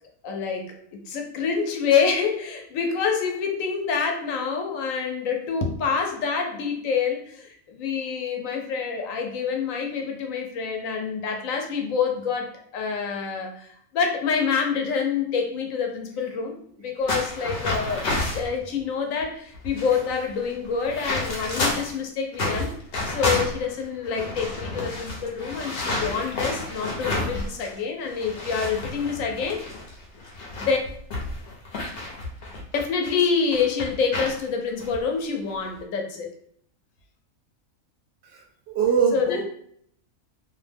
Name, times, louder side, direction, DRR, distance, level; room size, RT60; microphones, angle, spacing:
voice 1, 0.2-16.5 16.8-18.0 18.3-22.7 23.1-29.7 30.5-30.8 32.7-36.3 39.1-39.4, left 6 dB, 80° left, 2 dB, 1.0 m, -27 dB
footsteps heavy rubber boots forest deep packed snow falls, 17.1-18.5 19.2-19.3 19.5-22.0 22.3-27.8 28.1-33.1 33.5-34.4 34.8-35.0 35.5-35.8, left 2 dB, 55° left, 0.8 m, -30 dB
voice 2, 38.2-39.4, right 6 dB, 65° right, 0 dB, 0.7 m, -23 dB
2.6 x 2.1 x 3.3 m, 0.64 s
omnidirectional pair, 1.4 m